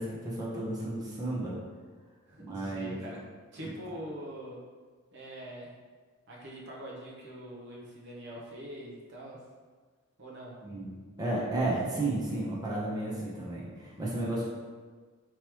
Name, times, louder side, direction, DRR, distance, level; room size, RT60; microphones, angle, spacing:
voice 1, 0.0-1.6 2.4-3.0 3.6-3.7 10.6-14.4, right 2 dB, 20° right, -6 dB, 0.8 m, -33 dB
voice 2, 2.3-3.2 3.5-4.6 5.1-5.7 6.3-9.4 10.2-10.6, right 1 dB, 55° right, -5 dB, 0.9 m, -43 dB
3.7 x 3.0 x 3.0 m, 1.5 s
head